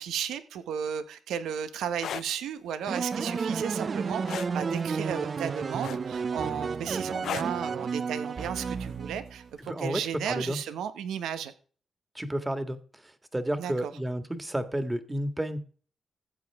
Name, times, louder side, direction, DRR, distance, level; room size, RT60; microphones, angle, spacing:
voice 1, 0.0-11.5 13.6-13.9, right 8 dB, 85° right, 11 dB, 0.9 m, -34 dB
sound 1, 1.9-2.3 4.3-4.6 5.8-6.3 7.2-7.6 9.0-9.2, left 9 dB, 75° left, 0.4 m, -34 dB
sound 2, 2.9-9.5, right 5 dB, 50° right, 0.5 m, -32 dB
voice 2, 9.7-10.0 10.3-10.6 12.2-12.8 13.3-15.6, right 1 dB, 15° right, 9 dB, 1.8 m, -31 dB
14.5 x 7.8 x 3.5 m, 0.40 s
supercardioid pair, 55°, 0 cm